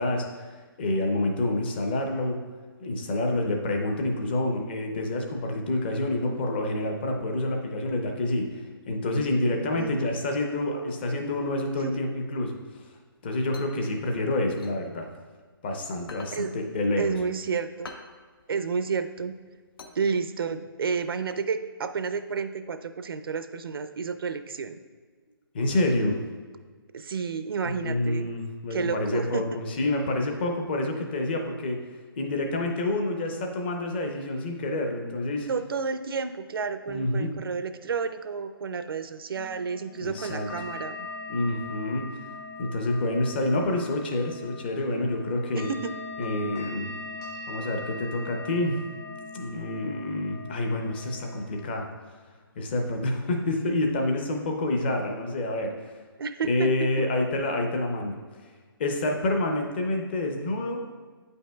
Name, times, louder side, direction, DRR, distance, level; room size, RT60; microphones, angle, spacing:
voice 1, 0.0-2.4 2.8-8.5 8.9-12.5 13.2-15.1 15.6-17.0 25.5-26.2 27.6-31.8 32.2-35.5 36.9-37.3 40.0-40.5 41.3-42.1 42.6-45.7 46.2-46.9 47.5-48.8 49.3-51.9 52.6-55.7 56.5-58.2 58.8-60.8, left 2 dB, 25° left, 3 dB, 0.5 m, -28 dB
voice 2, 9.7-10.1 11.8-11.9 16.3-16.5 17.0-17.9 18.5-19.4 19.9-24.8 26.9-28.3 28.7-29.6 35.5-41.1 45.5-45.9 56.2-56.9, right 5 dB, 70° right, 10 dB, 0.4 m, -31 dB
sound 1, 13.1-15.6 16.0-20.6, left 3 dB, 70° left, 0.8 m, -47 dB
sound 2, 39.3-51.6, left 3 dB, 45° left, 1.7 m, -41 dB
8.5 x 5.3 x 2.2 m, 1.5 s
hypercardioid pair, 165°, 13 cm